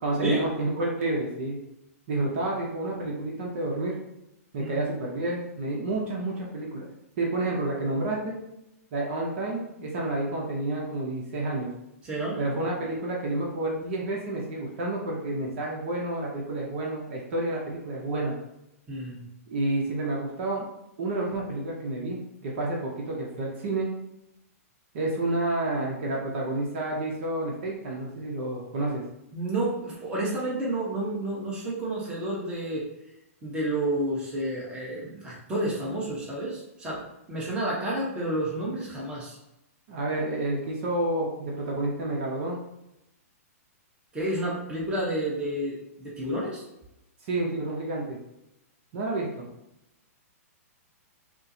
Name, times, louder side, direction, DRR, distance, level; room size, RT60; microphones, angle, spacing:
voice 1, 0.0-1.6 2.1-4.0 4.5-6.9 7.2-8.4 8.9-11.7 12.4-18.3 19.5-20.7 21.0-23.9 24.9-29.0 39.9-42.6 47.2-48.2 48.9-49.4, right 2 dB, 50° right, -2 dB, 0.8 m, -29 dB
voice 2, 12.0-12.4 18.9-19.2 29.3-32.8 33.4-37.0 37.3-39.4 44.1-46.6, right 1 dB, 10° right, -5 dB, 1.0 m, -30 dB
4.3 x 2.1 x 2.7 m, 0.87 s
hypercardioid pair, 140°, 8 cm